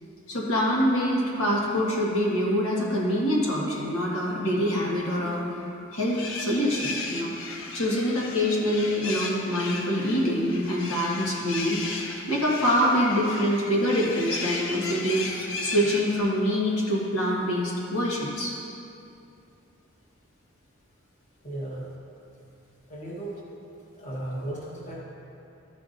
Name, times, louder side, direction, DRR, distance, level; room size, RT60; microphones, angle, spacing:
voice 1, 0.3-5.4 5.9-7.3 7.7-11.8 12.3-15.3 15.6-18.5, equal, 75° left, -4 dB, 1.5 m, -25 dB
sound 1, 6.1-16.2, left 3 dB, 60° left, 0.7 m, -36 dB
voice 2, 21.4-21.9 22.9-23.3 24.0-24.9, right 1 dB, 35° left, -6 dB, 1.2 m, -35 dB
12.5 x 5.8 x 2.6 m, 2.7 s
head